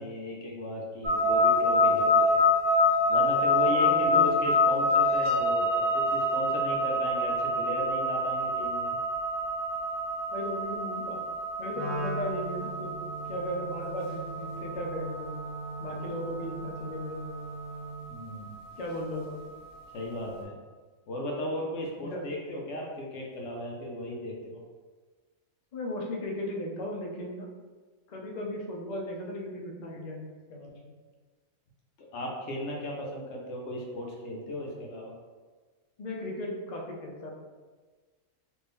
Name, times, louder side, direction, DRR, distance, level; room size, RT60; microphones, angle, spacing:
voice 1, 0.0-2.4 3.1-8.9 18.1-18.6 19.9-20.6 21.1-24.6 32.1-35.1, left 1 dB, 65° left, -1 dB, 0.9 m, -36 dB
sound 1, 1.0-20.1, left 2 dB, 50° right, 1.1 m, -27 dB
voice 2, 3.7-4.3 10.3-11.2 11.6-13.0 13.3-15.3 15.8-17.2 18.8-19.5 22.0-22.2 25.7-27.5 28.1-30.9 36.0-37.3, left 1 dB, 85° left, -1 dB, 0.3 m, -36 dB
Wind instrument woodwind instrument, 11.7-18.1, right 2 dB, 35° right, 0.6 m, -39 dB
3.0 x 2.6 x 3.5 m, 1.4 s
omnidirectional pair, 1.5 m